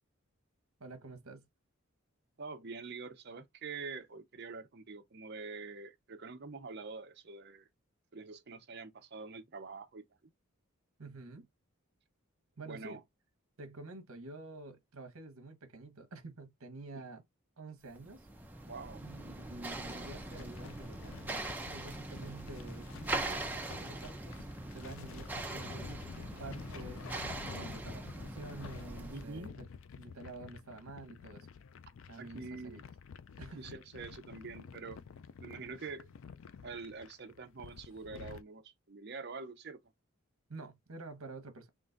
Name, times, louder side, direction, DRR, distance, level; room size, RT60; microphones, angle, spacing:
voice 1, 0.8-1.5 11.0-11.5 12.6-13.0 13.6-17.2 17.6-18.3 19.0-24.5 24.7-29.7 30.0-31.5 32.1-32.8 33.4-33.7 40.5-41.7, right 3 dB, 70° right, 0.9 m, -49 dB
voice 2, 2.4-7.7 8.1-10.0 12.6-13.0 18.7-19.0 25.9-26.0 29.1-29.5 32.2-32.8 33.4-35.0 35.4-36.1 36.6-39.8, right 4 dB, 50° right, 0.6 m, -45 dB
sound 1, 17.9-29.4, right 2 dB, 10° right, 0.5 m, -42 dB
sound 2, 19.9-38.4, left 6 dB, 65° left, 0.4 m, -51 dB
3.8 x 2.4 x 3.8 m
head